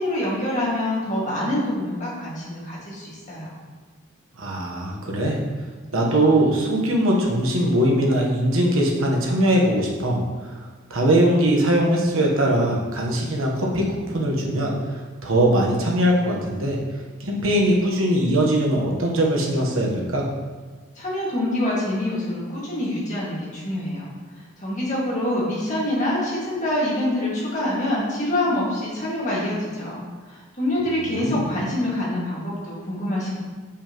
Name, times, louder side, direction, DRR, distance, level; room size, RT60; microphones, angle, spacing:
voice 1, 0.0-3.5 20.9-24.1 24.3-33.4, left 1 dB, 35° left, -6 dB, 1.9 m, -26 dB
voice 2, 4.4-5.4 5.9-10.2 10.9-14.7 15.2-16.8 17.2-20.3 31.2-31.5, right 1 dB, 80° right, -1 dB, 1.2 m, -21 dB
6.9 x 5.4 x 3.0 m, 1.4 s
head